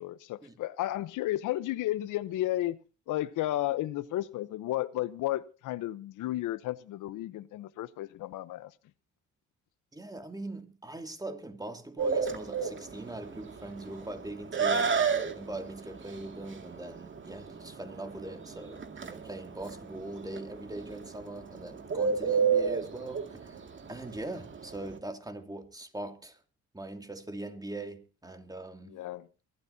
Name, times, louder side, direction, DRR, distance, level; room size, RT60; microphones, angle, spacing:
voice 1, 0.0-2.8 3.1-8.7 28.9-29.3, left 15 dB, 85° left, 0.9 m, -33 dB
voice 2, 9.9-23.6 23.9-26.4 26.7-29.0, right 2 dB, 10° right, 2.6 m, -41 dB
Bird, 12.0-25.0, right 6 dB, 40° right, 2.2 m, -31 dB
23.0 x 12.5 x 2.8 m
cardioid pair, 90°, 30 cm